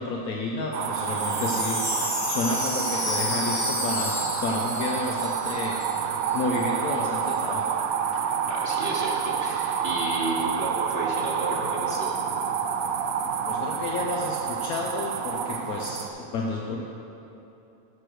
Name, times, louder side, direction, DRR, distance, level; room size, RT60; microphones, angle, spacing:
voice 1, 0.0-7.7 13.4-16.8, left 3 dB, 80° left, -1 dB, 1.2 m, -31 dB
sound 1, 0.7-16.1, right 7 dB, 75° right, 1.0 m, -28 dB
Wind chime, 0.8-6.0 6.2-6.3 6.5-7.0, left 2 dB, 35° left, 1.4 m, -32 dB
voice 2, 8.5-12.1, right 2 dB, 50° right, -3 dB, 1.1 m, -32 dB
11.5 x 4.5 x 6.5 m, 2.8 s
omnidirectional pair, 1.6 m